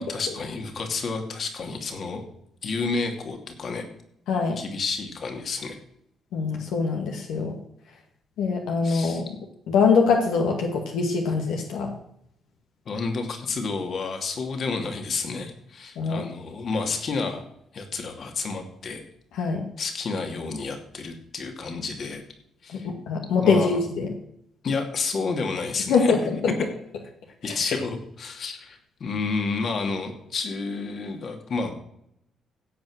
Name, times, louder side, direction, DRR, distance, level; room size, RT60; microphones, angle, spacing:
voice 1, 0.0-2.2 2.6-3.9 4.6-5.8 8.8-9.2 12.9-17.4 17.7-19.0 19.8-22.2 22.6-22.9 23.4-23.8 24.6-26.2 27.4-31.7, left 4 dB, 55° left, 4 dB, 2.6 m, -30 dB
voice 2, 4.3-4.6 6.3-7.6 8.4-9.3 9.7-11.9 16.0-16.2 19.4-19.6 22.8-24.1 25.9-26.4 27.5-27.6, left 5 dB, 85° left, 2 dB, 2.0 m, -23 dB
16.5 x 5.5 x 6.5 m, 0.74 s
cardioid pair, 90°, 0 cm